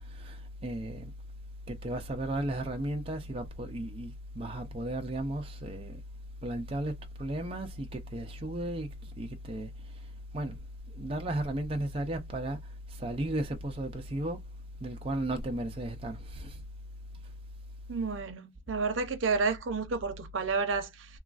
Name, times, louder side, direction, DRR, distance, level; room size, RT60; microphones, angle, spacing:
voice 1, 0.2-1.1 1.7-6.0 6.4-6.9 7.2-8.9 9.2-9.7 10.3-10.6 10.9-12.6 13.0-14.4 14.8-16.6, right 1 dB, 30° right, 0.4 m, -34 dB
voice 2, 17.9-21.1, right 4 dB, 80° right, 0.6 m, -30 dB
3.0 x 2.4 x 2.4 m
head